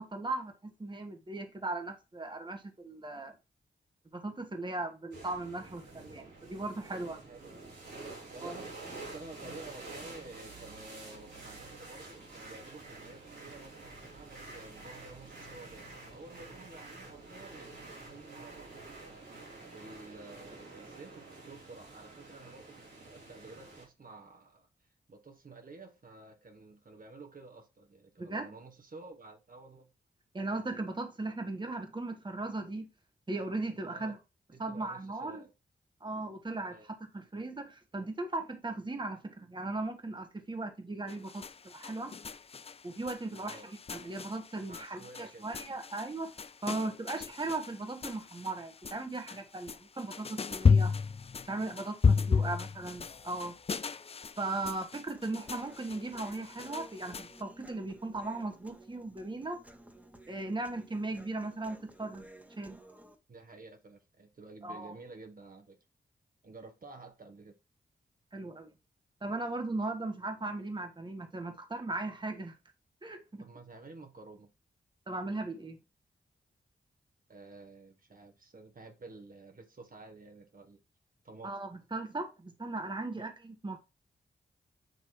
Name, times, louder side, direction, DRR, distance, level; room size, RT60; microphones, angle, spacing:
voice 1, 0.0-3.3 4.1-7.2 8.4-8.5 28.2-28.5 30.3-32.9 33.3-34.2 34.6-35.4 36.0-42.1 42.8-46.3 46.6-50.9 51.5-53.6 54.4-59.6 60.3-62.3 62.6-62.8 64.6-64.9 68.3-68.7 69.2-72.6 73.0-73.4 75.1-75.8 81.4-83.8, right 2 dB, 25° right, 1.3 m, -37 dB
sound 1, 5.1-23.9, right 3 dB, 90° right, 4.2 m, -48 dB
voice 2, 6.9-7.7 8.3-18.9 19.7-24.7 25.1-29.9 33.9-34.2 34.5-35.5 36.7-36.9 43.4-43.7 44.7-45.5 52.3-52.6 63.3-65.8 66.4-67.6 73.4-74.5 77.3-80.8 81.2-81.6 83.2-83.3, right 3 dB, 50° right, 1.3 m, -51 dB
sound 2, 41.1-57.4, left 5 dB, 35° left, 0.4 m, -33 dB
Human voice, 55.1-63.2, right 1 dB, 10° right, 1.4 m, -55 dB
7.9 x 3.0 x 4.7 m
cardioid pair, 60°, 18 cm